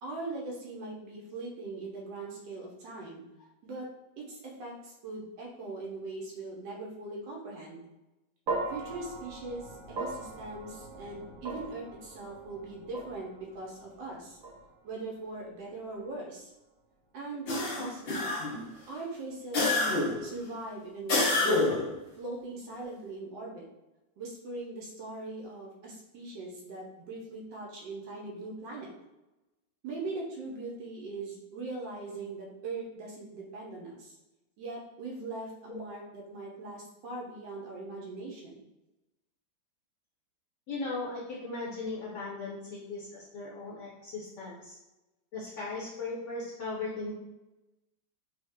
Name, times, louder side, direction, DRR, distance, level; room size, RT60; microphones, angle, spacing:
voice 1, 0.0-3.2 3.6-3.9 4.2-7.8 8.7-14.4 14.8-16.5 17.1-18.4 18.9-21.6 22.2-23.6 24.2-28.9 29.8-34.2 34.6-38.5, right 2 dB, 85° right, -2 dB, 1.4 m, -40 dB
sound 1, 8.5-16.8, right 3 dB, 65° right, 0.9 m, -41 dB
sound 2, 17.5-18.7 19.5-20.3 21.1-21.9, left 2 dB, 85° left, 0.5 m, -27 dB
voice 2, 40.7-44.8 45.3-47.1, left 3 dB, 60° left, -5 dB, 0.8 m, -38 dB
4.0 x 2.1 x 3.5 m, 1.0 s
omnidirectional pair, 1.9 m